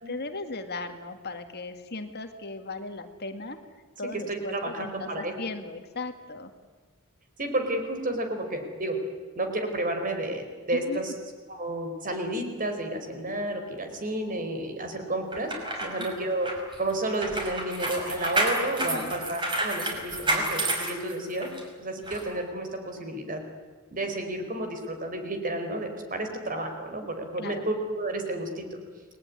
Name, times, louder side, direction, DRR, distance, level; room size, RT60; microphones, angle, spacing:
voice 1, 0.1-3.6 4.0-6.5 10.7-11.1 15.8-16.1 18.8-19.1 27.4-27.6, left 2 dB, 50° left, 7 dB, 2.1 m, -37 dB
voice 2, 4.3-5.3 7.4-9.0 9.3-11.1 11.5-15.5 15.8-16.5 16.8-21.5 21.8-23.4 23.9-28.6, right 1 dB, 40° right, 5 dB, 4.7 m, -31 dB
sound 1, 15.3-21.6 22.1-22.2, right 1 dB, 20° right, 6.0 m, -29 dB
29.0 x 20.5 x 9.9 m, 1.5 s
head